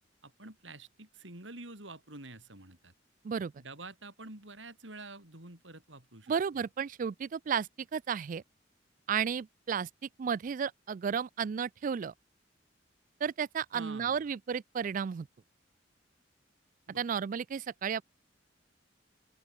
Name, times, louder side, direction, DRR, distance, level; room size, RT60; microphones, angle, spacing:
voice 1, 0.2-2.9 3.6-6.3 13.7-14.3 16.9-17.0, right 2 dB, 75° right, 5.8 m, -48 dB
voice 2, 6.3-8.4 9.1-12.1 13.2-15.3 17.0-18.0, right 7 dB, 45° right, 0.3 m, -33 dB
open air
head